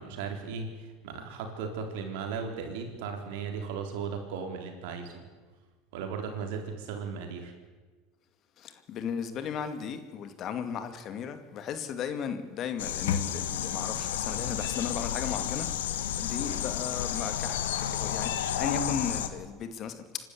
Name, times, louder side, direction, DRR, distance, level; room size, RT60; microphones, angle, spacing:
voice 1, 0.0-5.2 5.9-7.5, right 5 dB, 75° right, 3.9 m, -36 dB
voice 2, 8.6-15.7 16.2-20.3, left 7 dB, 50° left, 2.3 m, -35 dB
sound 1, 12.8-19.3, left 10 dB, 85° left, 1.4 m, -31 dB
26.5 x 12.5 x 8.5 m
hypercardioid pair, 90°, 0 cm